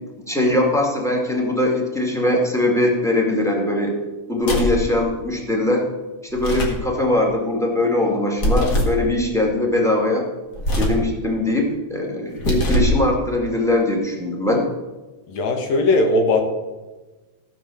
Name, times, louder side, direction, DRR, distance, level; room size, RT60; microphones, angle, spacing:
voice 1, 0.3-4.0 4.3-5.8 6.2-10.2 10.7-14.6, left 1 dB, ahead, 1 dB, 1.5 m, -21 dB
sound 1, 4.4-4.9 6.3-6.8 8.4-9.0 10.5-11.1 12.3-13.0, equal, 35° left, 2.0 m, -21 dB
voice 2, 15.3-16.4, left 2 dB, 60° left, 4 dB, 2.6 m, -18 dB
15.5 x 6.0 x 7.0 m, 1.2 s
omnidirectional pair, 3.6 m